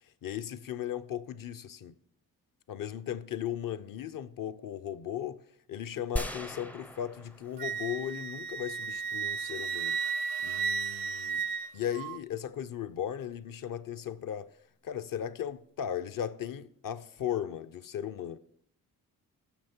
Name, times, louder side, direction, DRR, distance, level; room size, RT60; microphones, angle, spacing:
voice 1, 0.2-1.9 2.7-5.4 5.7-10.0 10.4-11.4 11.7-14.5 14.8-18.4, left 10 dB, 55° left, 0.7 m, -37 dB
sound 1, 6.2-8.1 8.4-8.5, equal, 5° left, 0.4 m, -38 dB
Wind instrument woodwind instrument, 7.6-12.2, right 6 dB, 65° right, 0.6 m, -34 dB
10.5 x 6.5 x 4.4 m
supercardioid pair, 50°, 40 cm